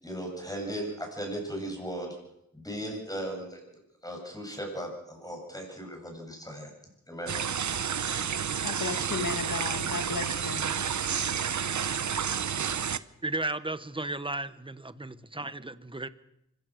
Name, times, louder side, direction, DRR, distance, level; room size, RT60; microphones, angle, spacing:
voice 1, 0.0-2.2 2.5-3.6 4.0-6.7 7.1-7.4, right 1 dB, 10° left, 2 dB, 7.9 m, -37 dB
sound 1, 7.3-13.0, right 7 dB, 70° right, 0.7 m, -30 dB
voice 2, 8.6-10.6 11.3-11.4, left 5 dB, 85° left, 7 dB, 1.9 m, -34 dB
voice 3, 13.2-16.1, right 2 dB, 15° right, 13 dB, 1.0 m, -34 dB
25.0 x 16.5 x 6.4 m, 0.82 s
wide cardioid pair, 75°, 31 cm